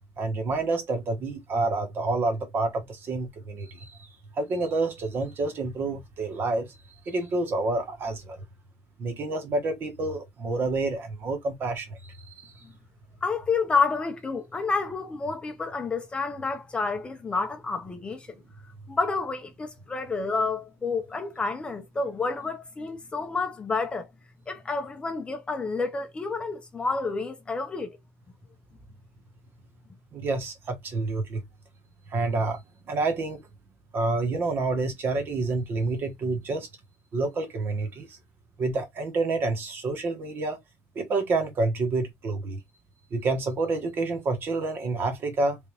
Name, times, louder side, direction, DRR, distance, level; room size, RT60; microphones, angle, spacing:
voice 1, 0.2-6.8 7.0-8.4 9.0-12.5 30.1-31.4 32.1-33.4 33.9-36.7 37.1-38.2 38.6-40.6 40.9-42.6 43.1-45.6, right 3 dB, 40° right, 1.3 m, -28 dB
voice 2, 13.2-18.3 18.9-24.1 24.5-28.0, left 4 dB, 20° left, 0.6 m, -29 dB
3.8 x 3.4 x 3.3 m
cardioid pair, 180°, 6 cm